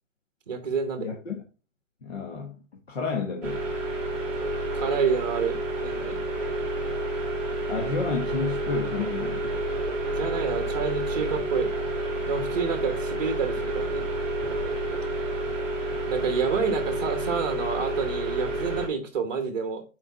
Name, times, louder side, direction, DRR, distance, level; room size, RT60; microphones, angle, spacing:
voice 1, 0.5-1.1 4.7-6.2 10.1-11.7 12.3-14.1 16.1-19.8, right 6 dB, 35° right, 1.0 m, -28 dB
voice 2, 1.0-1.4 2.0-2.6 2.9-3.6 7.7-9.6, left 5 dB, 55° left, 1.4 m, -31 dB
sound 1, 3.4-18.9, right 1 dB, ahead, 1.5 m, -29 dB
8.0 x 4.7 x 4.1 m
hypercardioid pair, 175°, 39 cm